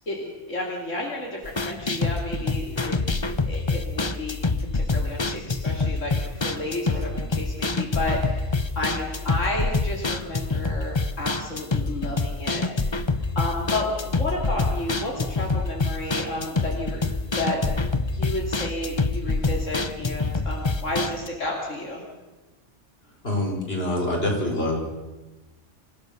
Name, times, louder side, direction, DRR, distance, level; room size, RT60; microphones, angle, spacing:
voice 1, 0.1-3.0 3.2-4.4 4.7-12.6 13.3-17.0 17.3-17.6 18.1-22.0, left 2 dB, 80° left, -1 dB, 3.2 m, -31 dB
sound 1, 1.5-21.3, left 3 dB, 25° left, 0.9 m, -26 dB
voice 2, 23.2-24.8, left 1 dB, 50° left, -1 dB, 5.5 m, -25 dB
27.0 x 16.0 x 6.9 m, 1.1 s
omnidirectional pair, 1.3 m